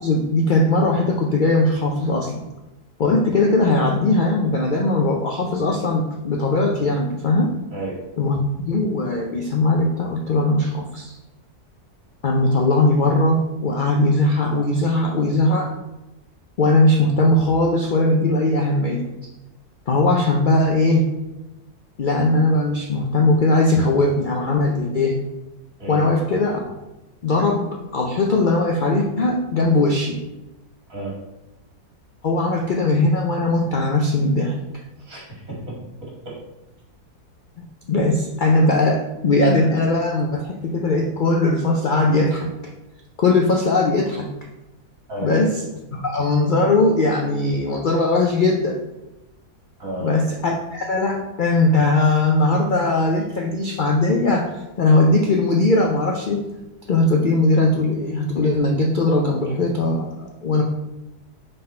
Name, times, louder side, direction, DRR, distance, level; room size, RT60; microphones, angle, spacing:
voice 1, 0.0-2.4 3.0-7.5 8.2-8.4 8.7-11.2 12.2-15.7 16.6-19.1 19.9-21.0 22.0-25.2 25.9-26.7 27.2-27.7 27.9-30.2 32.2-34.6 37.9-42.5 43.2-44.3 45.2-45.5 45.9-48.8 50.0-56.5 56.9-60.6, left 2 dB, 75° left, 1 dB, 0.4 m, -19 dB
voice 2, 7.7-8.0 25.8-26.1 30.9-31.2 35.0-35.6 36.0-36.4 45.1-45.4 49.8-50.2, right 2 dB, 60° right, -4 dB, 2.6 m, -32 dB
5.9 x 4.0 x 4.3 m, 1.0 s
omnidirectional pair, 1.7 m